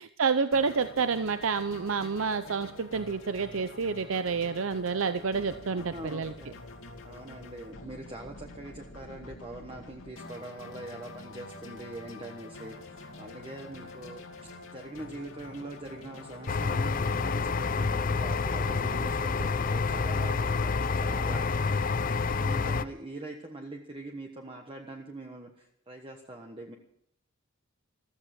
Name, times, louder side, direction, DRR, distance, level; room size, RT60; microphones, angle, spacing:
voice 1, 0.2-6.3, right 5 dB, 80° right, 11 dB, 0.7 m, -29 dB
sound 1, 0.5-19.7, left 2 dB, 80° left, 2.5 m, -47 dB
voice 2, 5.7-6.7 7.0-26.7, right 2 dB, 25° right, 2 dB, 1.3 m, -43 dB
sound 2, 16.5-22.8, left 4 dB, 40° left, 0.6 m, -28 dB
14.5 x 14.5 x 6.0 m, 0.72 s
head